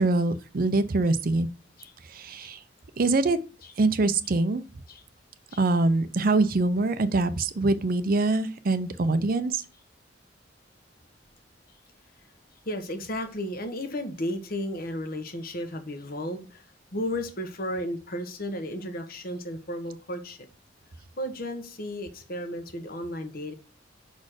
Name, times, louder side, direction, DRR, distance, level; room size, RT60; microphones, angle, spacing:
voice 1, 0.0-1.5 2.2-2.6 3.0-3.4 3.8-4.6 5.6-9.6, right 2 dB, 50° right, 0.6 m, -24 dB
voice 2, 12.7-16.6 16.9-20.4 21.2-23.5, left 1 dB, 50° left, 1.3 m, -34 dB
6.1 x 4.2 x 6.4 m
head